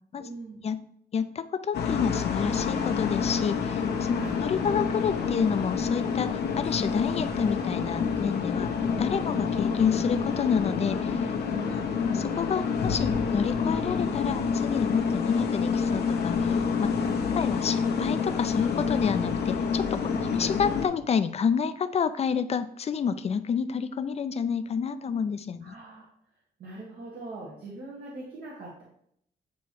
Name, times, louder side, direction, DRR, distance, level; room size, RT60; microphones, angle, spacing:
voice 1, 0.2-0.6 4.1-4.3 8.7-8.9 11.5-11.8 17.0-17.2 20.0-20.3 25.6-26.1 26.6-28.8, right 2 dB, 75° right, -5 dB, 1.6 m, -42 dB
voice 2, 1.1-11.3 11.7-11.8 12.1-16.9 17.3-25.7, left 6 dB, 40° left, 12 dB, 0.4 m, -29 dB
sound 1, 1.7-20.9, left 6 dB, 90° left, 0.9 m, -28 dB
8.3 x 3.0 x 4.7 m, 0.70 s
cardioid pair, 105°, 16 cm